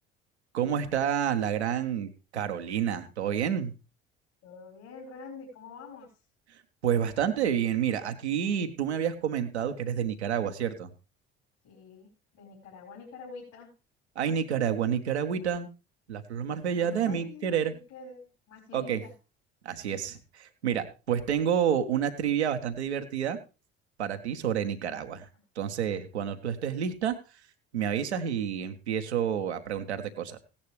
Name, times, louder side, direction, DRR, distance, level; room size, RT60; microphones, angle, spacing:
voice 1, 0.5-3.7 6.8-10.9 14.1-15.7 16.1-17.7 18.7-19.0 19.6-23.4 24.0-25.3 25.6-27.2 27.7-30.4, right 8 dB, 85° right, 8 dB, 1.1 m, -29 dB
voice 2, 4.4-6.1 11.6-13.7 16.5-18.2 18.5-19.1, left 4 dB, 65° left, -2 dB, 4.7 m, -46 dB
16.5 x 10.5 x 3.2 m, 0.31 s
hypercardioid pair, 55°, 32 cm